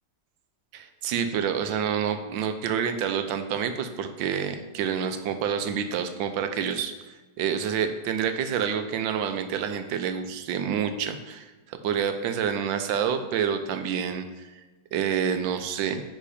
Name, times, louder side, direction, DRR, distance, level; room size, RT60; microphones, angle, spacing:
voice 1, 0.7-6.9 7.4-14.5 14.9-16.0, right 7 dB, 85° right, 8 dB, 1.4 m, -28 dB
9.8 x 3.7 x 4.2 m, 1.2 s
omnidirectional pair, 2.0 m